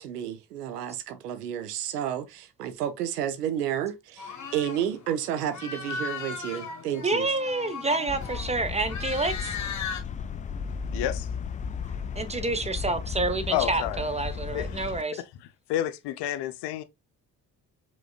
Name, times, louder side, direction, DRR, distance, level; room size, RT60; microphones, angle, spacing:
voice 1, 0.0-7.3, right 10 dB, 85° right, 0.7 m, -31 dB
sound 1, 4.2-10.0, left 5 dB, 35° left, 1.4 m, -37 dB
voice 2, 7.0-9.6 12.1-15.2, right 2 dB, 15° right, 1.0 m, -28 dB
sound 2, 8.1-15.0, left 6 dB, 20° left, 0.3 m, -35 dB
voice 3, 10.9-11.3 13.5-14.0 14.5-14.7 15.7-16.8, left 12 dB, 60° left, 0.7 m, -29 dB
4.9 x 3.8 x 2.4 m
figure-of-eight pair, 45°, 46 cm